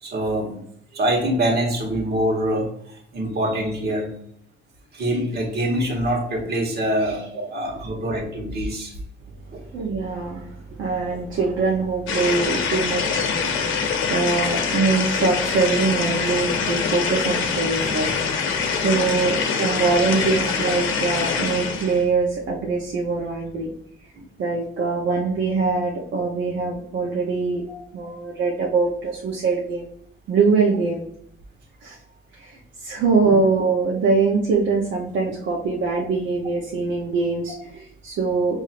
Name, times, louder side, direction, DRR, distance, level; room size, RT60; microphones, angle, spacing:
voice 1, 0.0-0.6 0.9-4.1 4.9-8.9 9.5-9.6 11.1-11.2 19.1-19.2 27.7-27.8 33.2-33.3, right 1 dB, 55° right, 0 dB, 1.2 m, -25 dB
voice 2, 9.7-23.7 24.4-27.6 27.9-29.9 30.3-31.0 31.8-32.0 32.3-38.6, right 4 dB, 70° right, -2 dB, 0.8 m, -23 dB
sound 1, 12.1-22.0, left 5 dB, 85° left, 0.7 m, -24 dB
5.6 x 2.6 x 2.5 m, 0.65 s
cardioid pair, 90°, 20 cm